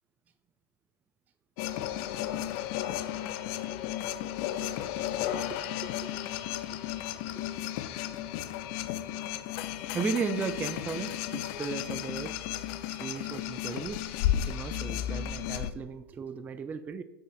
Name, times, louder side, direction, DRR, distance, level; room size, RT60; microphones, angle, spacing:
sound 1, 1.6-15.7, left 12 dB, 40° left, 0.5 m, -34 dB
voice 1, 5.3-6.1 9.9-12.3 12.9-14.0 14.5-17.0, right 5 dB, 15° right, 11 dB, 0.3 m, -36 dB
9.2 x 7.8 x 2.3 m, 1.1 s
figure-of-eight pair, 100°, 13 cm